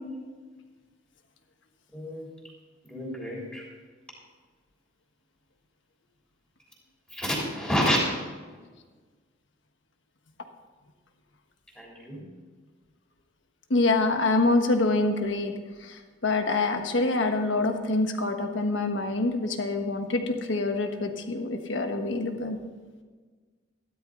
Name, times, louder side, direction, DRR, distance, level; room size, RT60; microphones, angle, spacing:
voice 1, 1.9-2.3 2.8-3.7 7.1-8.0 11.7-12.3, equal, 5° left, -4 dB, 3.2 m, -29 dB
voice 2, 13.7-15.5 16.2-22.6, left 2 dB, 70° left, 5 dB, 1.3 m, -25 dB
13.5 x 12.5 x 3.9 m, 1.4 s
head